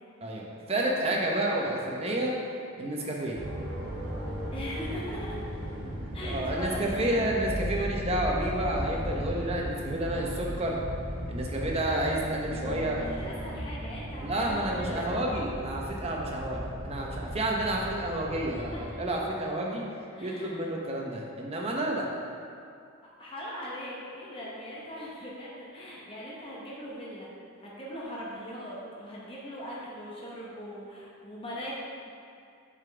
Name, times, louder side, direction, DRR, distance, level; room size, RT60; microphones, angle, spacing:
voice 1, 0.2-2.3 2.8-3.4 6.2-10.8 11.3-13.0 14.2-19.8 20.2-22.1, right 1 dB, 30° right, -2 dB, 0.8 m, -30 dB
sound 1, 3.3-19.4, equal, 75° right, 1.2 m, -36 dB
voice 2, 4.5-5.4 6.1-7.4 13.0-15.1 18.7-18.8 20.1-20.5 23.2-27.3 27.6-31.8, equal, 25° left, -6 dB, 0.9 m, -40 dB
7.4 x 5.1 x 3.4 m, 2.4 s
head